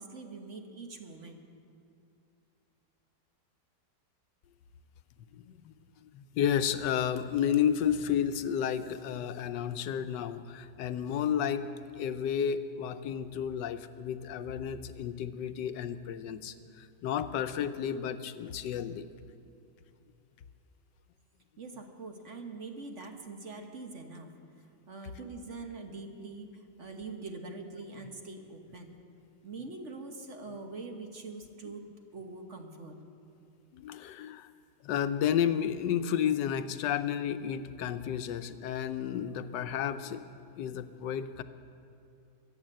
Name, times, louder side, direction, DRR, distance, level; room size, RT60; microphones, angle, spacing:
voice 1, 0.0-1.4 21.6-24.3 24.9-26.5 26.8-29.0 29.4-31.8 32.1-32.9, right 3 dB, 45° right, 4 dB, 1.5 m, -43 dB
voice 2, 5.3-5.7 6.0-19.1 31.6-31.7 33.7-34.5 34.8-40.2 40.5-41.4, left 9 dB, 90° left, 11 dB, 1.3 m, -32 dB
23.0 x 8.0 x 7.6 m, 2.6 s
omnidirectional pair, 1.8 m